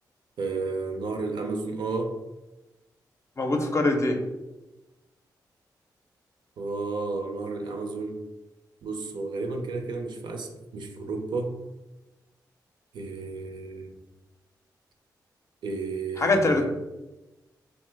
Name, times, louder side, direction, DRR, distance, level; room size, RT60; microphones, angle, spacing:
voice 1, 0.4-2.2 6.6-8.2 8.8-11.5 12.9-13.9 15.6-16.7, right 3 dB, 75° right, 4 dB, 0.5 m, -32 dB
voice 2, 3.4-4.2 16.2-16.7, left 2 dB, 40° left, 4 dB, 0.5 m, -23 dB
2.8 x 2.1 x 3.2 m, 1.0 s
cardioid pair, 70°, 8 cm